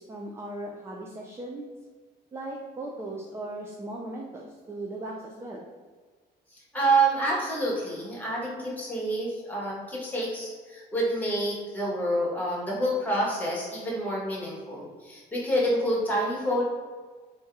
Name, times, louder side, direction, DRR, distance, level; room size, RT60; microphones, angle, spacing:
voice 1, 0.0-1.7 2.3-5.6, right 1 dB, 15° right, -1 dB, 0.4 m, -38 dB
voice 2, 6.5-16.6, right 1 dB, 10° left, -5 dB, 1.2 m, -28 dB
3.6 x 2.8 x 4.5 m, 1.5 s
cardioid pair, 160°, 18 cm